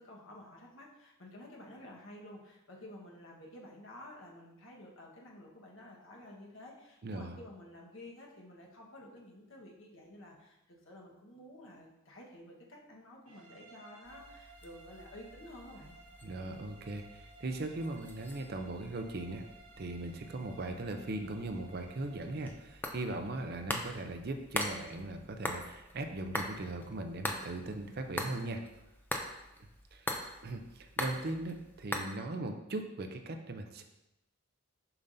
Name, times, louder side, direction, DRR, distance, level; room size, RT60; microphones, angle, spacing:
voice 1, 0.0-16.0, left 1 dB, 65° left, -2 dB, 1.3 m, -52 dB
voice 2, 7.0-7.4 16.2-19.4 19.8-28.6 29.9-30.1 30.4-33.8, right 2 dB, 45° right, 6 dB, 0.5 m, -39 dB
sound 1, 13.3-22.7, right 3 dB, 75° right, 1.2 m, -57 dB
sound 2, 14.0-32.0, left 1 dB, 10° left, 0.4 m, -43 dB
6.9 x 5.5 x 2.6 m, 0.96 s
head